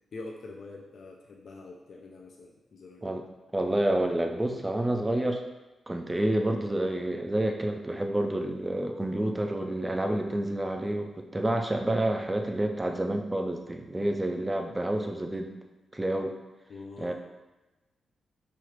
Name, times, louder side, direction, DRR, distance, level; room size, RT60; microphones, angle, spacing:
voice 1, 0.1-3.1 16.7-17.1, left 3 dB, 60° left, 0 dB, 0.4 m, -44 dB
voice 2, 3.5-5.4 5.9-15.5 15.9-16.4 17.0-17.1, right 1 dB, 15° right, 4 dB, 0.4 m, -29 dB
Wind instrument woodwind instrument, 8.6-14.3, equal, 65° right, 1.3 m, -58 dB
3.1 x 2.4 x 3.1 m, 1.1 s
cardioid pair, 95°, 0 cm